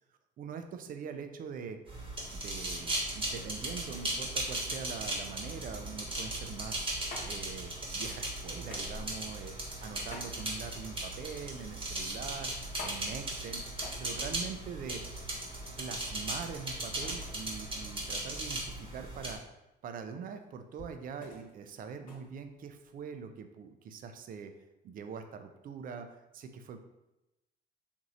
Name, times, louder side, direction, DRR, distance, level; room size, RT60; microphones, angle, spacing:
voice 1, 0.4-1.8 2.3-6.9 7.2-9.5 9.8-12.5 12.8-13.6 14.0-15.0 15.8-19.4 19.8-24.5 24.8-26.8, right 6 dB, 40° right, 7 dB, 0.4 m, -43 dB
sound 1, 1.9-19.3, right 1 dB, 25° right, 1.1 m, -37 dB
sound 2, 7.1-23.1, left 2 dB, 40° left, 0.9 m, -52 dB
2.9 x 2.6 x 2.5 m, 0.95 s
hypercardioid pair, 65°, 21 cm